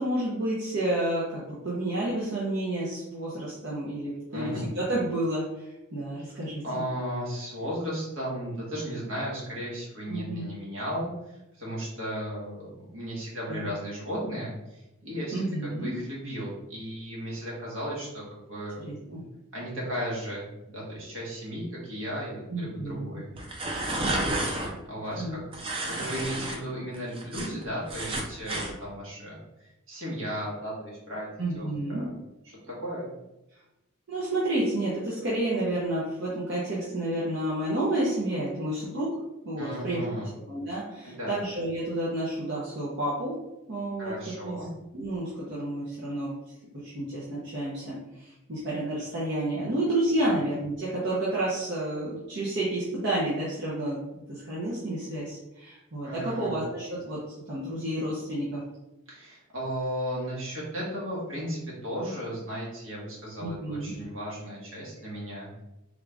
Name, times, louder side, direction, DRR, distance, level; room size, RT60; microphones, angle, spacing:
voice 1, 0.0-6.8 10.1-10.5 13.5-13.7 15.3-15.9 18.8-19.2 22.5-23.1 25.2-25.4 31.4-32.1 34.1-39.2 39.4-40.0 40.3-43.4 43.7-44.6 44.9-46.3 46.8-57.2 57.5-58.6 63.4-63.9, right 1 dB, 55° right, -8 dB, 0.8 m, -30 dB
voice 2, 4.3-4.7 6.6-11.1 11.6-15.3 15.6-18.2 18.5-19.2 19.5-23.3 24.0-24.5 24.8-25.4 25.8-29.4 29.9-31.3 31.5-32.1 32.4-33.1 39.6-40.3 41.1-41.4 44.0-44.7 50.2-50.4 56.0-56.6 59.1-65.6, equal, 75° right, -5 dB, 1.5 m, -35 dB
sound 1, 23.3-24.7 25.5-26.6 26.9-28.7, right 2 dB, 25° right, 0.5 m, -31 dB
3.6 x 2.4 x 3.4 m, 0.92 s
head